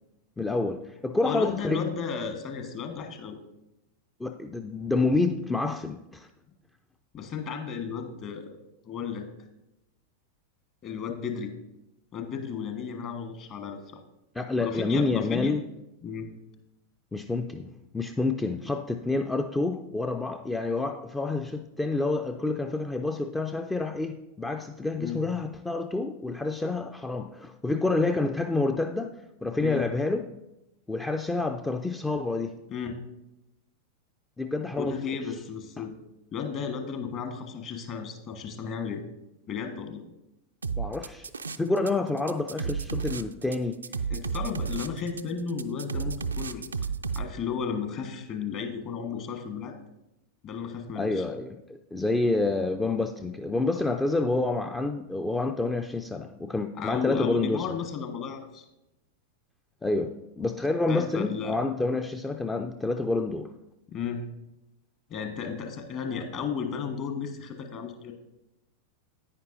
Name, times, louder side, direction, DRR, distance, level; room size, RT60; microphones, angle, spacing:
voice 1, 0.4-1.9 4.2-6.3 14.3-15.6 17.1-30.3 30.9-32.6 34.4-34.9 40.8-41.3 41.6-43.8 51.0-57.7 59.8-63.5, left 3 dB, 10° left, 6 dB, 0.4 m, -28 dB
voice 2, 1.2-3.4 7.1-8.6 8.9-9.3 10.8-11.6 12.1-13.8 14.6-15.6 16.0-16.3 25.0-25.2 29.6-29.8 32.7-33.0 34.8-35.9 36.3-39.0 39.5-40.0 44.1-46.7 47.1-49.7 50.4-51.2 56.8-58.6 60.9-61.6 63.9-64.2 65.1-68.1, left 6 dB, 35° left, 5 dB, 1.4 m, -34 dB
sound 1, 40.6-41.9 42.2-47.2, right 5 dB, 75° right, 0.3 m, -32 dB
9.7 x 9.4 x 2.6 m, 0.92 s
figure-of-eight pair, 90°, 0 cm